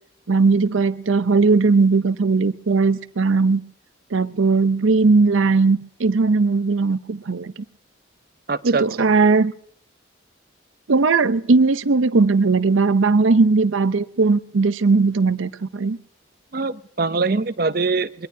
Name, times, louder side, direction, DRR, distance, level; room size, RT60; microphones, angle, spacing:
voice 1, 0.3-3.6 4.1-7.5 8.6-9.5 10.9-16.0, right 4 dB, 85° right, 13 dB, 0.7 m, -18 dB
voice 2, 8.5-8.8 16.5-18.3, right 4 dB, 50° right, 13 dB, 0.6 m, -23 dB
22.5 x 21.5 x 2.7 m, 0.66 s
head